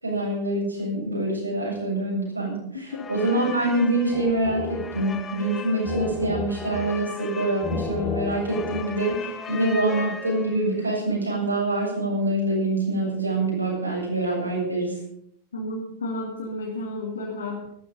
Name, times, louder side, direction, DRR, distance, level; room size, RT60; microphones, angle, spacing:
voice 1, 0.0-15.0, right 1 dB, 85° right, -3 dB, 7.6 m, -25 dB
voice 2, 2.7-3.1 15.5-17.7, left 2 dB, 70° left, -2 dB, 3.0 m, -32 dB
sound 1, 2.9-10.8, left 5 dB, 20° left, 1.5 m, -34 dB
15.0 x 13.5 x 5.4 m, 0.72 s
figure-of-eight pair, 90°, 0 cm